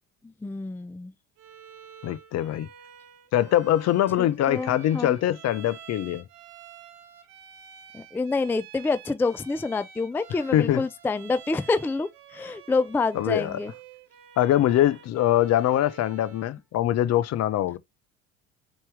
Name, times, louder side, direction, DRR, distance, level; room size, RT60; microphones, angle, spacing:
voice 1, 0.4-1.1 4.2-5.2 7.9-13.7, left 3 dB, 5° left, 0.4 m, -27 dB
Bowed string instrument, 1.4-16.6, right 8 dB, 65° right, 1.0 m, -48 dB
voice 2, 2.0-2.7 3.3-6.2 10.5-10.8 13.1-13.6 14.4-17.8, left 12 dB, 50° left, 0.7 m, -23 dB
4.4 x 3.1 x 3.3 m
hypercardioid pair, 65°, 34 cm